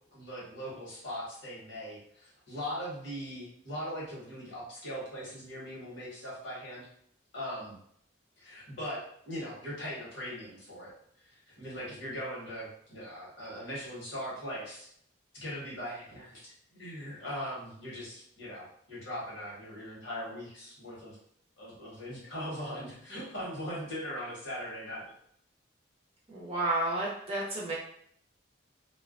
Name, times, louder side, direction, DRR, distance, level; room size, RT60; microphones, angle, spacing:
voice 1, 0.1-6.9 7.3-7.8 8.4-9.0 9.2-10.9 11.2-14.9 15.3-21.2 21.6-25.1, equal, 70° left, -6 dB, 1.2 m, -40 dB
voice 2, 26.3-27.7, right 2 dB, 30° right, -5 dB, 0.6 m, -31 dB
2.4 x 2.2 x 2.4 m, 0.66 s
head